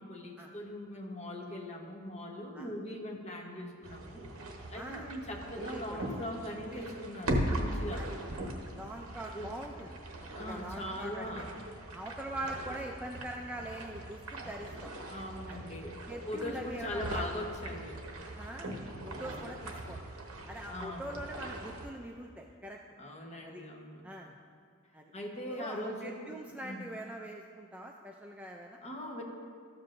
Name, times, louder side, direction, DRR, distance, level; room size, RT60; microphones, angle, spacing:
voice 1, 0.0-4.2 4.7-8.1 9.3-9.5 10.3-11.5 15.0-18.0 19.1-19.4 20.7-21.0 23.0-24.1 25.1-26.3 26.6-26.9 28.8-29.2, left 1 dB, 30° left, 0 dB, 1.0 m, -41 dB
sound 1, 3.8-21.9, right 1 dB, 70° right, 1.0 m, -40 dB
voice 2, 4.7-5.1 5.6-6.1 7.9-8.1 8.7-10.0 10.5-11.3 11.9-14.9 15.5-15.6 16.1-17.2 18.2-18.8 19.0-20.0 20.5-22.8 23.4-23.6 24.0-24.3 24.9-25.1 25.5-28.8, right 1 dB, 5° right, 0 dB, 0.3 m, -43 dB
13.0 x 7.4 x 2.6 m, 2.1 s
head